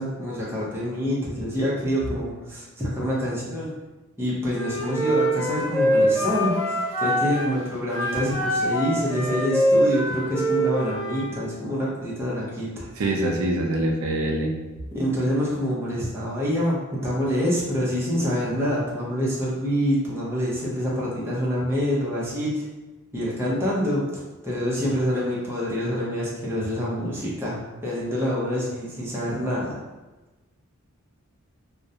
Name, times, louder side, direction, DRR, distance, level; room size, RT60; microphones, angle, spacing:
voice 1, 0.0-3.7 4.2-12.9 14.9-22.6 23.1-29.8, equal, 10° right, -7 dB, 0.5 m, -26 dB
Wind instrument woodwind instrument, 4.5-7.5 7.9-11.3, right 1 dB, 20° left, 1.0 m, -24 dB
voice 2, 13.0-14.5, right 1 dB, 70° right, 1 dB, 0.4 m, -24 dB
2.3 x 2.0 x 2.6 m, 1.1 s
head